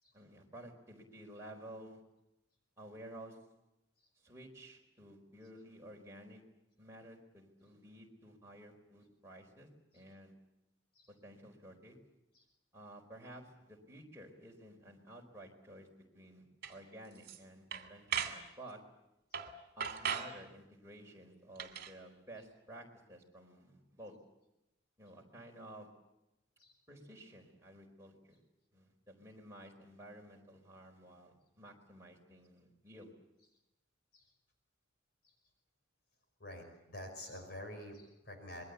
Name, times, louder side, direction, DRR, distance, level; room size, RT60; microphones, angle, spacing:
voice 1, 0.1-2.0 2.8-3.4 4.2-6.4 6.8-10.3 11.1-12.0 12.7-15.9 16.1-18.8 19.8-24.2 25.0-25.9 26.9-28.4 28.7-33.1, right 1 dB, 15° right, -1 dB, 4.6 m, -53 dB
sound 1, 16.6-16.7 17.2-17.4 17.7-18.4 19.3-19.5 19.8-20.3 21.6-21.9, right 7 dB, 50° right, 2.8 m, -37 dB
voice 2, 36.4-38.6, left 1 dB, 50° left, 5 dB, 5.4 m, -48 dB
26.5 x 22.0 x 8.3 m, 0.92 s
head